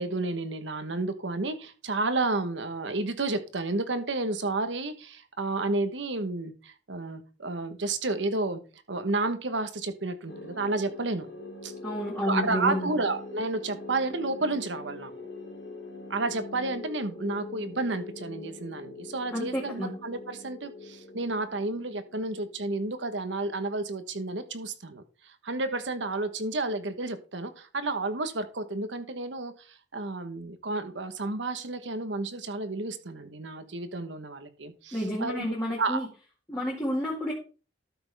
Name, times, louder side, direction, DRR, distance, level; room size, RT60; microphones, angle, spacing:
voice 1, 0.0-8.6 8.9-11.3 11.6-11.7 12.2-15.1 16.1-36.1, right 2 dB, 75° right, 9 dB, 1.1 m, -31 dB
sound 1, 10.3-23.0, left 2 dB, 80° left, 1.7 m, -43 dB
voice 2, 11.8-12.9 19.3-19.9 34.9-36.1 36.5-37.3, equal, 15° left, -4 dB, 1.9 m, -30 dB
12.5 x 6.1 x 3.5 m, 0.35 s
head